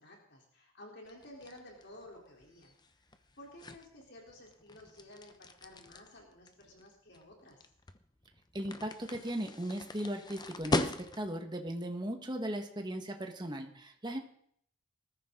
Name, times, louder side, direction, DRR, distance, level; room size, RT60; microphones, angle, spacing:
voice 1, 0.0-2.7 3.4-7.6, left 1 dB, 50° left, 0 dB, 3.8 m, -53 dB
sound 1, 1.1-11.5, left 2 dB, 20° left, 0.9 m, -40 dB
voice 2, 8.5-14.2, right 1 dB, 20° right, 4 dB, 1.7 m, -37 dB
20.5 x 14.0 x 3.9 m, 0.64 s
head